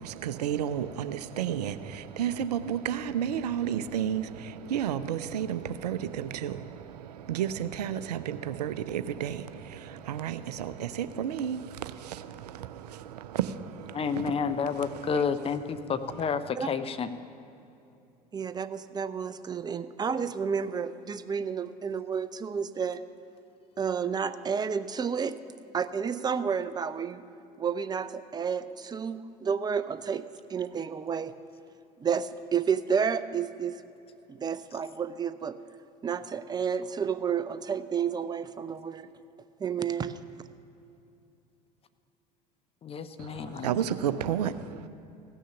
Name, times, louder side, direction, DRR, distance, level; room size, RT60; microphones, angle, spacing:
voice 1, 0.0-15.3 15.7-16.3 43.2-44.9, right 9 dB, 75° right, 0.5 m, -32 dB
voice 2, 13.9-17.1 42.8-43.7, left 6 dB, 30° left, 0.6 m, -30 dB
voice 3, 18.3-23.0 23.8-25.4 25.7-27.2 27.6-30.2 30.5-31.3 32.0-33.8 34.3-35.6 36.0-39.1 39.6-40.2, right 6 dB, 20° right, 0.5 m, -31 dB
15.5 x 6.4 x 7.0 m
figure-of-eight pair, 70°, 21 cm